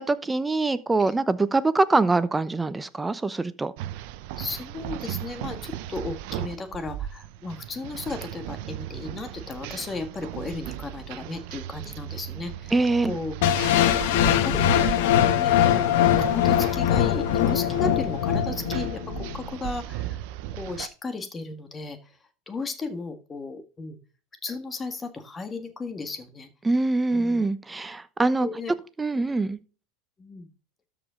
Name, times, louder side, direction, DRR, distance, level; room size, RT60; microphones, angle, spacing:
voice 1, 0.0-3.7 12.7-13.1 26.6-28.5 29.0-29.6, right 3 dB, 15° right, 0.8 m, -24 dB
sound 1, 3.8-20.9, right 12 dB, 65° right, 0.7 m, -37 dB
voice 2, 4.4-12.7 13.1-13.3 14.3-15.0 15.3-20.2 20.5-22.1 22.5-24.0 24.4-26.5 27.1-27.4 28.4-28.7 29.1-29.3 30.2-30.5, left 3 dB, 25° left, 1.7 m, -35 dB
sound 2, 13.4-19.4, left 10 dB, 70° left, 1.1 m, -22 dB
13.0 x 5.2 x 3.8 m
hypercardioid pair, 95°, 0 cm